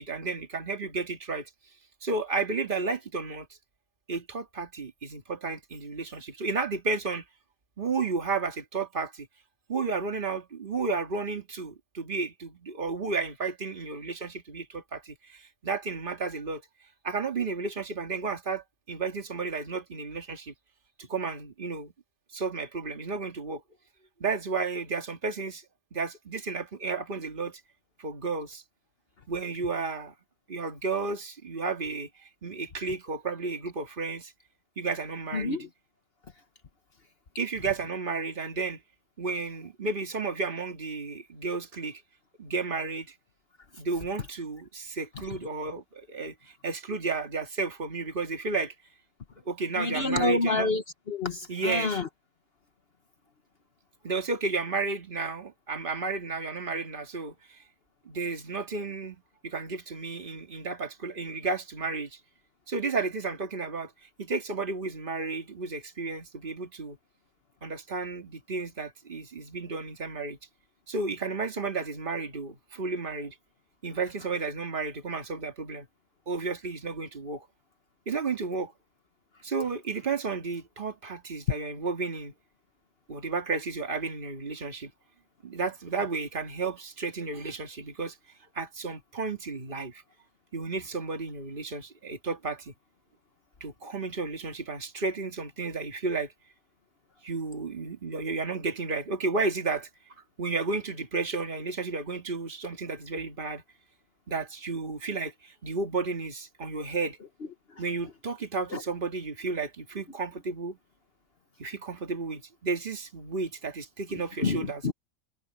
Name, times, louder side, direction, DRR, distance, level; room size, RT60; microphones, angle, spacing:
voice 1, 0.0-1.5 2.0-3.5 4.1-7.2 7.8-9.3 9.7-16.6 17.0-20.5 21.0-21.9 22.3-23.6 24.2-25.6 25.9-27.6 28.0-28.6 29.3-30.1 30.5-34.3 34.8-35.6 37.4-38.8 39.2-42.0 42.4-43.1 43.8-48.7 49.5-50.7 51.5-52.0 54.0-57.6 58.1-62.2 62.7-63.9 64.2-67.0 67.6-70.4 70.9-73.4 73.8-75.9 76.3-77.5 78.1-78.7 79.4-82.3 83.1-84.9 85.4-88.2 88.5-90.0 90.5-92.7 93.6-96.3 97.2-99.9 100.2-103.6 104.3-107.2 107.8-110.8 111.6-114.8, right 4 dB, 35° right, 2.2 m, -32 dB
voice 2, 35.3-35.7 49.8-52.1 108.7-108.8 114.4-114.9, left 3 dB, 45° left, 1.3 m, -28 dB
omnidirectional pair, 1.4 m